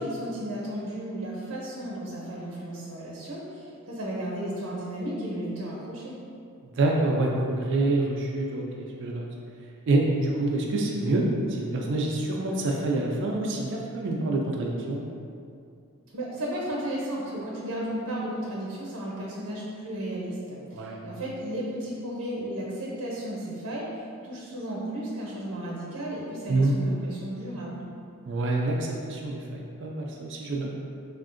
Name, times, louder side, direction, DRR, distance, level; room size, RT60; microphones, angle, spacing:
voice 1, 0.0-6.2 16.1-27.9, right 1 dB, 90° right, -5 dB, 0.7 m, -34 dB
voice 2, 6.6-8.6 9.0-9.3 9.9-15.0 20.7-21.0 26.5-26.8 28.3-30.7, right 2 dB, 55° right, -1 dB, 0.3 m, -26 dB
3.5 x 2.4 x 2.5 m, 2.4 s
head